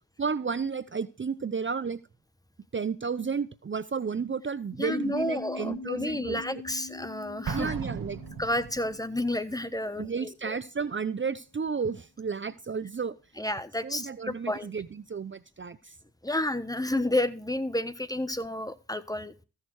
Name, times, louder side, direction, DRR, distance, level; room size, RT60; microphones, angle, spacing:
voice 1, 0.2-2.0 2.7-6.6 7.5-8.2 10.0-13.2 13.8-16.0, right 5 dB, 35° right, 15 dB, 0.7 m, -32 dB
voice 2, 4.8-7.7 8.4-10.6 13.4-14.7 16.2-19.3, left 1 dB, 10° left, 14 dB, 1.2 m, -31 dB
sound 1, 4.9-10.2, left 4 dB, 50° left, 1.8 m, -43 dB
Explosion, 7.5-9.1, right 6 dB, 75° right, 1.5 m, -36 dB
14.5 x 6.6 x 4.8 m, 0.33 s
cardioid pair, 55°, 35 cm